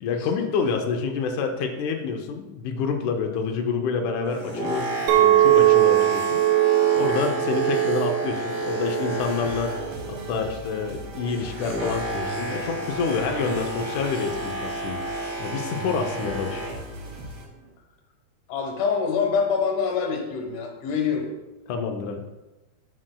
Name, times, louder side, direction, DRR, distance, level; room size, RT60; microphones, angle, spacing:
voice 1, 0.0-6.6 6.9-9.8 10.1-15.0 15.4-16.6 21.7-22.2, left 5 dB, 90° left, 3 dB, 1.7 m, -28 dB
Boat Water vehicle, 4.2-10.2 10.5-16.9 17.6-17.7, right 1 dB, 35° right, 1.5 m, -31 dB
Chink clink, 5.1-10.3, right 15 dB, 75° right, 2.3 m, -21 dB
sound 1, 9.1-17.4, right 1 dB, 55° right, 1.8 m, -39 dB
voice 2, 18.5-21.3, left 6 dB, 65° left, 2 dB, 2.4 m, -25 dB
11.5 x 6.2 x 2.2 m, 1.0 s
omnidirectional pair, 4.4 m